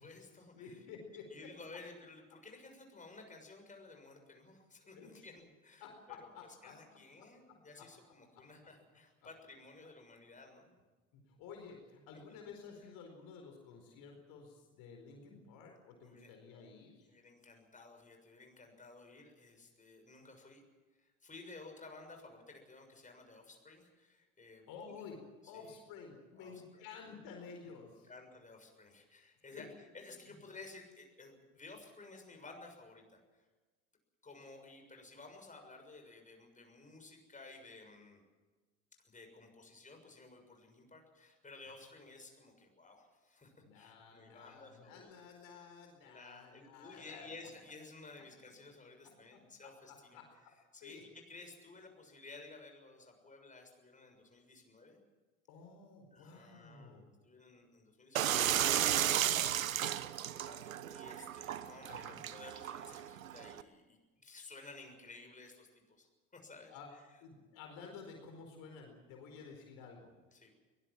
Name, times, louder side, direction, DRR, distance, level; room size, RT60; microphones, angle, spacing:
voice 1, 0.0-0.8 1.3-6.2 6.6-10.8 12.3-12.4 16.0-16.3 17.0-20.6 20.9-25.0 25.5-25.8 26.4-26.8 28.0-33.4 34.2-38.2 39.0-45.1 46.0-50.2 50.7-55.0 56.1-60.1 60.4-67.0 70.3-70.5, left 3 dB, 20° left, 3 dB, 6.7 m, -55 dB
voice 2, 0.5-1.5 4.9-5.3 5.8-7.3 7.8-7.9 11.2-17.1 24.7-25.2 25.4-28.1 29.5-29.7 30.0-30.4 43.6-47.5 49.3-50.5 50.8-51.0 55.5-57.0 61.9-62.2 66.7-66.9 67.2-70.1, left 5 dB, 55° left, 3 dB, 4.6 m, -52 dB
sound 1, 58.2-63.6, right 11 dB, 80° right, 1.0 m, -34 dB
22.5 x 19.5 x 7.5 m, 1.3 s
figure-of-eight pair, 65°, 40 cm